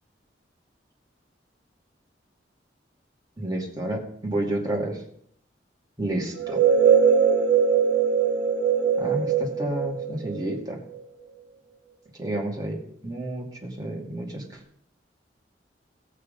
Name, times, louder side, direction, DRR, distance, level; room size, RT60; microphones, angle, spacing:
voice 1, 3.4-5.0 6.0-6.6 9.0-10.8 12.2-14.5, right 1 dB, 20° right, -1 dB, 2.3 m, -30 dB
sound 1, 6.4-11.0, right 7 dB, 75° right, 1.3 m, -21 dB
16.5 x 6.6 x 5.3 m, 0.67 s
head